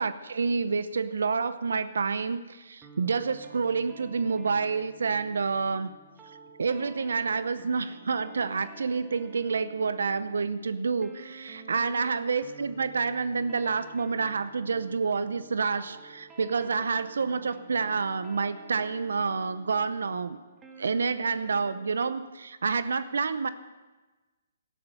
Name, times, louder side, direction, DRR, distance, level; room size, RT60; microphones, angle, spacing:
voice 1, 0.0-5.9 6.6-20.4 20.8-23.5, right 5 dB, 75° right, 14 dB, 0.7 m, -28 dB
sound 1, 2.8-21.9, right 4 dB, 15° right, 1.4 m, -51 dB
13.0 x 11.5 x 6.8 m, 1.2 s
hypercardioid pair, 140°, 0 cm